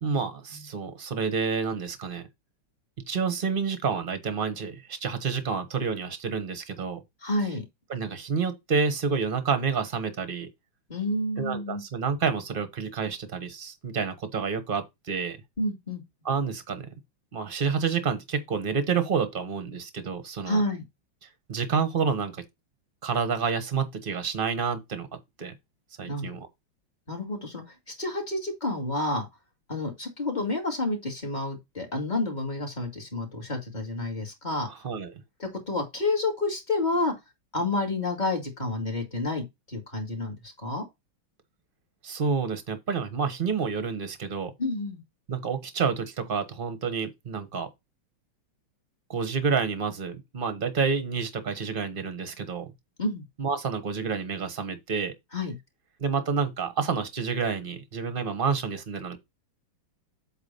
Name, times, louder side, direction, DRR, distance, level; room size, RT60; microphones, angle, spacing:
voice 1, 0.0-2.2 3.1-7.0 7.9-10.5 11.4-15.4 16.2-16.9 17.3-20.6 21.2-22.3 23.0-25.1 25.4-25.5 26.0-26.5 34.7-35.1 42.0-44.5 45.3-47.7 49.1-52.7 53.4-55.1 56.0-59.2, right 5 dB, 35° right, 1.0 m, -29 dB
voice 2, 7.2-7.6 10.9-11.8 15.6-16.0 20.5-20.8 26.1-26.3 27.1-29.3 29.7-34.7 35.4-37.1 37.5-40.8 44.6-45.0 53.0-53.2 55.3-55.5, left 2 dB, 20° left, 2.2 m, -29 dB
8.2 x 3.0 x 5.5 m
omnidirectional pair, 2.2 m